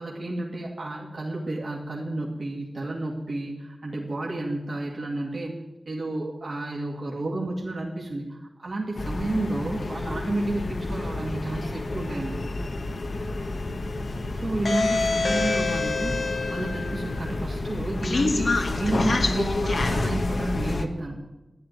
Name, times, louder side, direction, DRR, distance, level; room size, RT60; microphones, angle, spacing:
voice 1, 0.0-12.4 14.3-16.2 16.5-21.2, right 2 dB, 60° right, -2 dB, 2.4 m, -31 dB
sound 1, 9.0-20.9, left 2 dB, 65° left, 1.3 m, -27 dB
12.5 x 10.5 x 9.3 m, 1.0 s
wide cardioid pair, 85°, 0 cm